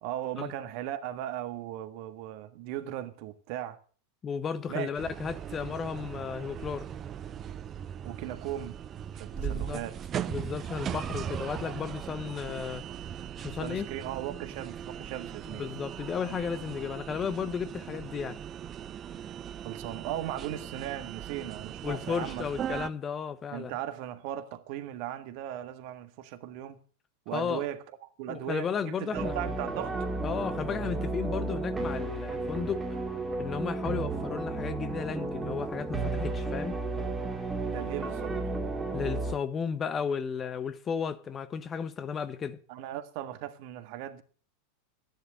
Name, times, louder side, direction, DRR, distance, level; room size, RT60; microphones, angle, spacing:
voice 1, 0.0-3.8 4.7-4.9 8.0-8.8 9.1-10.0 13.6-15.7 19.6-22.4 23.5-26.8 27.2-30.0 37.6-38.4 42.7-44.2, right 12 dB, 50° right, 1.6 m, -37 dB
voice 2, 4.2-6.9 9.3-9.8 10.3-12.9 13.4-13.9 15.5-18.4 21.8-23.7 27.3-27.6 28.3-29.5 30.2-33.0 33.4-36.8 38.9-42.6, left 6 dB, 25° left, 1.0 m, -34 dB
sound 1, 5.0-22.9, right 9 dB, 30° right, 0.8 m, -39 dB
sound 2, 29.1-39.3, right 3 dB, 15° right, 2.2 m, -33 dB
13.5 x 10.5 x 6.8 m
figure-of-eight pair, 90°, 0 cm